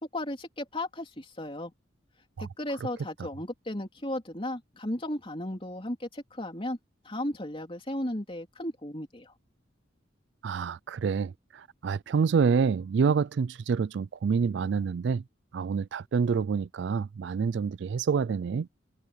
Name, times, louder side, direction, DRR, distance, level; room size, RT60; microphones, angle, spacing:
voice 1, 0.1-1.7 2.4-6.8 7.0-9.3, left 1 dB, 30° left, 3.6 m, -35 dB
voice 2, 10.4-15.2 15.5-18.7, right 5 dB, 60° right, 0.3 m, -27 dB
head